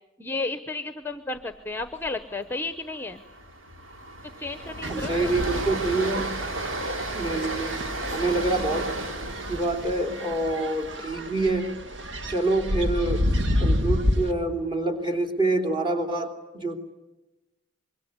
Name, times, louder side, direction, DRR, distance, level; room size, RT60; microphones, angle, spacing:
voice 1, 0.2-3.2 4.4-5.3, left 3 dB, 10° left, 10 dB, 0.9 m, -33 dB
Train, 1.8-2.1 2.4-2.5 2.9-13.0, right 1 dB, 80° right, 3.7 m, -34 dB
sound 1, 4.8-14.3, left 1 dB, 65° right, 1.9 m, -30 dB
voice 2, 4.9-6.3 7.1-7.8 8.1-8.9 9.5-11.7 12.3-13.3 13.6-16.8, right 2 dB, 25° right, 5 dB, 3.3 m, -26 dB
25.5 x 23.0 x 9.9 m, 1.0 s
head